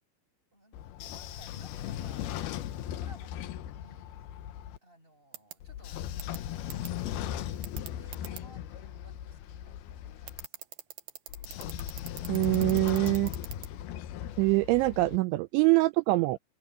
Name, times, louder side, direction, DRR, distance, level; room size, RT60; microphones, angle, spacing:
voice 1, 0.5-2.5 2.7-4.2 4.8-6.1 6.7-7.4 7.9-10.5 11.8-12.3 15.0-15.2 15.6-15.8, right 1 dB, 10° right, 7.9 m, -59 dB
Train / Sliding door, 0.7-4.8 5.6-10.4 11.3-15.2, left 11 dB, 75° left, 2.3 m, -38 dB
sound 1, 5.3-5.5 6.2-6.4 6.7-6.9 7.6-8.4 10.3-13.7, right 10 dB, 60° right, 2.7 m, -41 dB
voice 2, 12.3-13.3 14.4-16.4, right 21 dB, 85° right, 2.7 m, -24 dB
open air
omnidirectional pair, 5.8 m